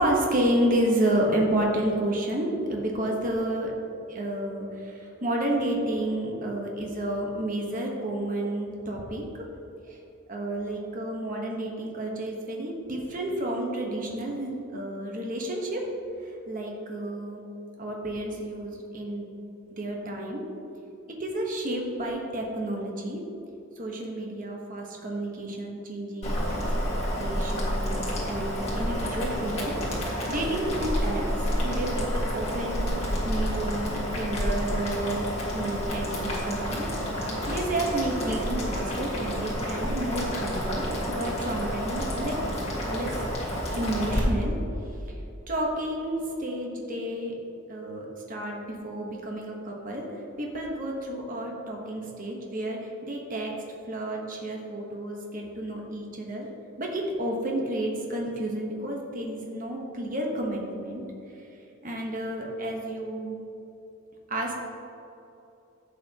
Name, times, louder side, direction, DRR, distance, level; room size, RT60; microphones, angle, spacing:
voice 1, 0.0-3.7 4.1-9.4 9.9-10.0 10.3-15.8 16.2-17.4 17.8-19.3 19.7-20.4 21.2-23.2 23.8-26.3 26.8-26.9 27.2-27.9 28.2-31.2 31.6-32.9 33.2-36.9 37.5-42.4 42.9-43.1 43.7-44.6 45.5-47.3 47.7-53.5 53.9-56.5 56.8-61.0 61.4-61.5 61.8-63.4 64.3-64.5, right 1 dB, 40° right, 0 dB, 1.1 m, -30 dB
Boiling, 26.2-44.2, equal, 30° left, 1.8 m, -29 dB
11.0 x 7.6 x 2.9 m, 2.9 s
head